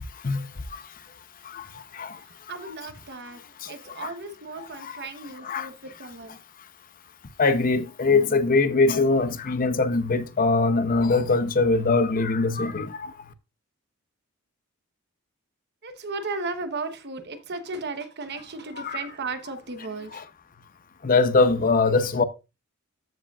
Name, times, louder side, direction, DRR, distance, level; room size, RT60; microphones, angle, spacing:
voice 1, 0.2-0.8 1.4-2.2 3.6-4.1 4.8-5.1 5.4-5.7 7.4-13.1 18.8-19.0 20.1-20.2 21.0-22.2, left 3 dB, 40° left, 0.7 m, -23 dB
voice 2, 2.2-6.4 15.8-20.2, right 3 dB, 50° right, 1.0 m, -35 dB
14.0 x 5.0 x 2.4 m
head